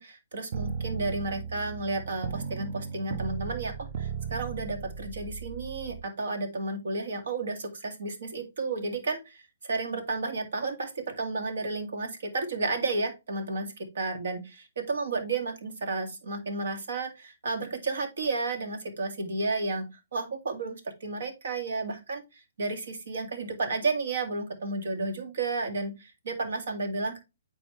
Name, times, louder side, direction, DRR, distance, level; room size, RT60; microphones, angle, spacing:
voice 1, 0.0-19.9 20.1-27.2, right 3 dB, 70° right, 6 dB, 2.2 m, -32 dB
Transition Bass, 0.5-6.0, right 6 dB, 45° right, 0.8 m, -36 dB
8.6 x 4.4 x 3.2 m, 0.25 s
hypercardioid pair, 140°, 0 cm